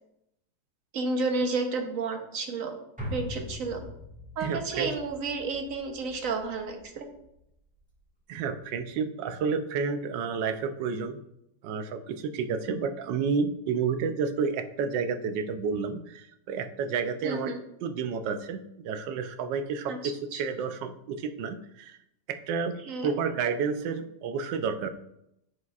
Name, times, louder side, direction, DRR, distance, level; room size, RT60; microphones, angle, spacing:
voice 1, 0.9-2.7 3.1-3.8 4.4-7.1 17.2-17.6 19.9-20.4 22.8-23.2, right 3 dB, 55° right, 4 dB, 1.1 m, -31 dB
sound 1, 3.0-7.4 7.8-7.9, left 2 dB, 5° right, 1.6 m, -41 dB
voice 2, 4.4-4.9 8.3-11.2 11.6-17.5 17.8-22.0 22.3-22.8 23.0-24.9, right 5 dB, 85° right, 9 dB, 1.3 m, -30 dB
9.4 x 6.5 x 2.4 m, 0.81 s
omnidirectional pair, 1.9 m